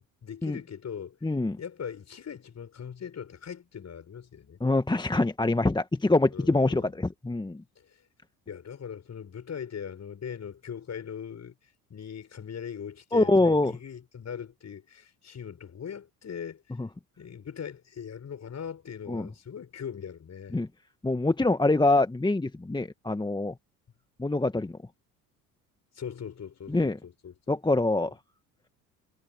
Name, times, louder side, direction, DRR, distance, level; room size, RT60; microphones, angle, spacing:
voice 1, 0.0-1.2 1.6-4.6 6.3-6.9 7.8-8.0 8.5-11.5 11.9-16.6 17.2-20.6 25.9-28.1, left 7 dB, 35° left, 6.6 m, -40 dB
voice 2, 1.2-1.6 4.6-7.6 13.1-13.7 16.8-16.9 19.1-19.3 20.5-20.7 21.0-23.5 24.2-24.7 26.7-27.0 27.5-28.2, left 2 dB, 10° left, 2.0 m, -25 dB
figure-of-eight pair, 60°, 47 cm